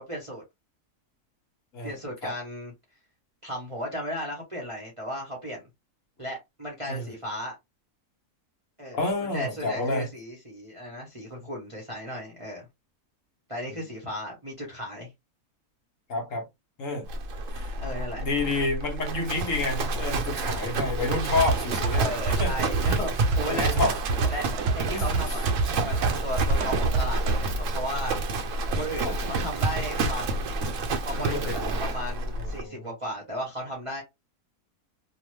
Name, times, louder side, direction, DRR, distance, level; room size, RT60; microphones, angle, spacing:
voice 1, 0.1-0.4 1.8-2.7 3.4-5.6 6.2-7.6 8.8-9.0 9.3-12.7 13.5-15.1 17.8-18.2 22.0-23.7 24.3-24.5 24.8-25.4 25.8-28.2 28.8-30.5 31.0-34.0, equal, 30° right, 0.6 m, -35 dB
voice 2, 8.9-10.1 13.7-13.8 16.1-16.4 16.8-17.1 17.5-17.7 18.2-22.1 22.4-22.7 23.4-24.4 24.9-25.1 29.0-29.1 31.2-31.8 32.4-32.9, left 2 dB, 60° left, 1.1 m, -29 dB
Livestock farm animals working animals, 17.1-32.6, right 2 dB, 65° right, 0.9 m, -29 dB
sound 1, 21.4-27.4, right 4 dB, 85° right, 1.1 m, -28 dB
2.9 x 2.1 x 3.1 m
omnidirectional pair, 1.6 m